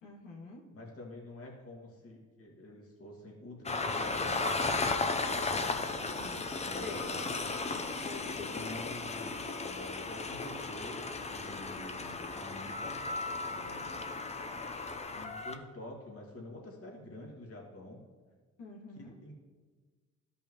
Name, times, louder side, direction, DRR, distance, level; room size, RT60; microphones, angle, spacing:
voice 1, 0.0-0.6 6.0-6.5 6.8-7.1 8.0-8.5 18.6-19.1, left 3 dB, 90° left, -4 dB, 1.9 m, -46 dB
voice 2, 0.7-5.8 6.6-7.3 8.2-13.1 13.5-14.5 15.1-18.0 18.9-19.3, left 1 dB, 50° left, -2 dB, 2.1 m, -48 dB
Train, 3.7-15.6, left 3 dB, 20° left, 0.6 m, -35 dB
13.0 x 5.5 x 3.0 m, 1.5 s
cardioid pair, 90°, 30 cm